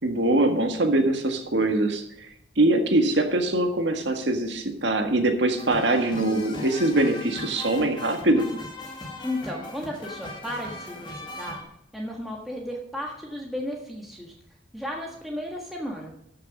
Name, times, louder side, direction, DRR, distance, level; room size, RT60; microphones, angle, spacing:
voice 1, 0.0-2.3 2.6-8.5, right 2 dB, 75° right, 5 dB, 1.7 m, -23 dB
sound 1, 5.6-11.6, left 2 dB, 25° left, 2.0 m, -39 dB
voice 2, 9.2-11.6 11.9-14.3 14.7-16.1, left 1 dB, ahead, -2 dB, 1.6 m, -34 dB
13.0 x 6.7 x 5.3 m, 0.75 s
head